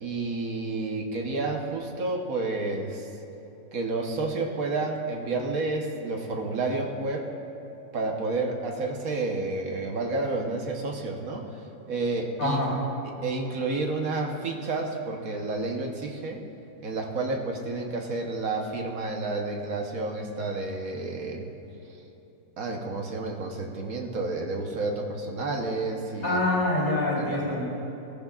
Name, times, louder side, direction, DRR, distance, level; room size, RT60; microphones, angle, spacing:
voice 1, 0.0-3.1 3.7-7.3 7.9-12.6 13.0-16.4 16.8-21.5 22.6-26.4 27.1-27.6, right 3 dB, 50° right, 2 dB, 1.3 m, -30 dB
voice 2, 12.4-12.7 26.2-27.6, left 1 dB, 45° left, -6 dB, 4.0 m, -25 dB
21.0 x 14.5 x 2.4 m, 2.9 s
omnidirectional pair, 2.1 m